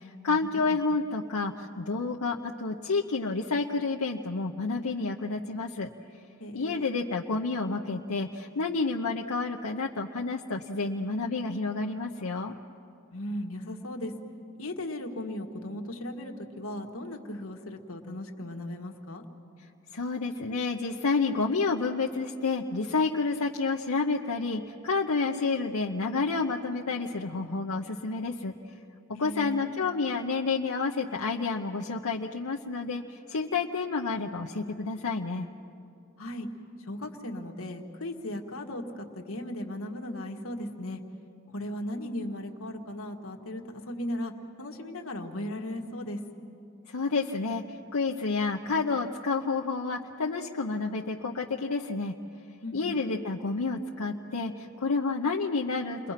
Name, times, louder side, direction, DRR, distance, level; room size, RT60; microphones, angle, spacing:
voice 1, 0.0-5.9 6.5-12.5 19.9-28.5 29.2-35.5 46.9-52.1 52.7-56.1, left 4 dB, 85° left, 0 dB, 0.9 m, -30 dB
voice 2, 6.4-6.9 13.1-14.1 14.6-19.2 29.1-29.7 36.2-36.5 36.8-41.0 41.5-44.3 44.6-46.2 52.6-53.0, left 1 dB, 70° left, 3 dB, 1.7 m, -37 dB
29.5 x 22.0 x 5.9 m, 2.6 s
head